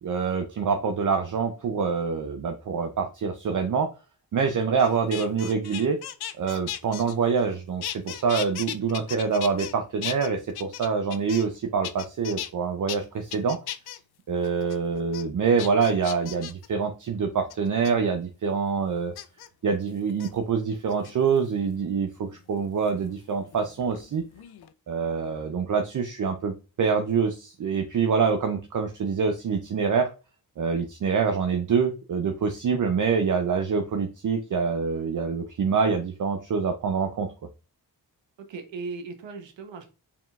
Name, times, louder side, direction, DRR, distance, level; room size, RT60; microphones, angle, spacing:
voice 1, 0.0-3.9 4.3-6.0 6.4-13.6 14.3-19.1 19.6-24.2 24.9-30.1 30.6-37.3, right 5 dB, 45° right, 5 dB, 0.6 m, -25 dB
sound 1, 4.8-7.5 7.8-9.7 10.0-11.6 11.8-12.5 12.9-13.0 13.3-14.0 14.4-14.8 15.1-15.2 15.6-16.7 17.5-17.9 19.2-19.5 20.1-20.3 20.9-21.5 22.9-24.1 24.3-24.7, left 11 dB, 60° left, 0.5 m, -37 dB
voice 2, 38.4-39.9, right 4 dB, 85° right, 6 dB, 0.9 m, -38 dB
4.5 x 3.7 x 2.4 m, 0.32 s
cardioid pair, 75°, 43 cm